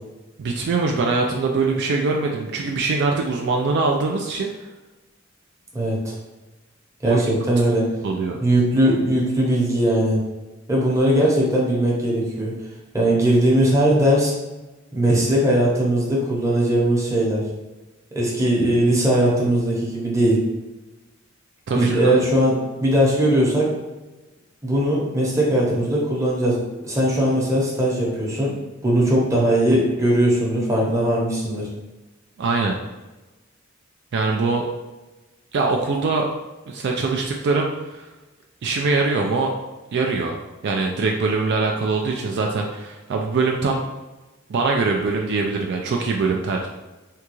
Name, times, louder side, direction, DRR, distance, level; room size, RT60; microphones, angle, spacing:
voice 1, 0.4-4.5 7.0-7.2 8.0-8.4 21.7-22.1 32.4-32.7 34.1-34.7 35.5-36.3 36.7-38.1 38.6-39.5 39.9-40.4 40.6-43.8 44.5-46.7, right 3 dB, 55° right, 1 dB, 0.3 m, -22 dB
voice 2, 5.7-6.1 7.0-7.9 8.4-10.2 10.7-12.5 12.9-14.3 14.9-17.4 18.1-20.4 21.7-22.5 22.8-23.7 24.6-26.6 26.8-28.5 28.8-31.6, right 1 dB, 15° right, -5 dB, 0.8 m, -19 dB
3.7 x 2.3 x 3.0 m, 1.1 s
head